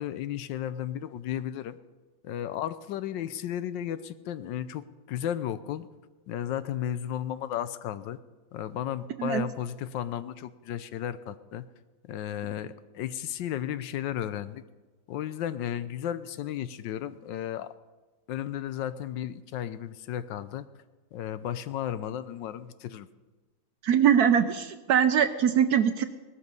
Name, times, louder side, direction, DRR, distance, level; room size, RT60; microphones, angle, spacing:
voice 1, 0.0-1.8 2.2-5.9 6.3-8.2 8.5-11.7 12.0-14.6 15.1-17.7 18.3-20.7 21.1-23.1, left 10 dB, 75° left, 14 dB, 1.3 m, -34 dB
voice 2, 23.8-26.0, right 8 dB, 65° right, 10 dB, 1.0 m, -22 dB
18.5 x 13.0 x 5.4 m, 1.3 s
omnidirectional pair, 2.1 m